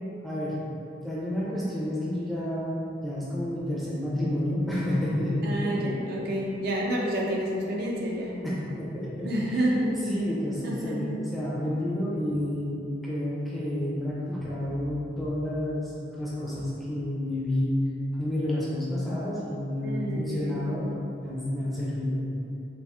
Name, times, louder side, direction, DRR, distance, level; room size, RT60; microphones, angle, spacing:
voice 1, 0.2-0.6 1.0-6.0 8.4-9.6 10.1-17.8 18.1-20.9 21.2-22.2, left 1 dB, ahead, -8 dB, 0.5 m, -30 dB
voice 2, 5.4-8.4 9.2-10.0 10.6-11.0 19.8-20.7, right 1 dB, 55° right, -3 dB, 0.4 m, -29 dB
4.2 x 2.5 x 2.3 m, 2.7 s
head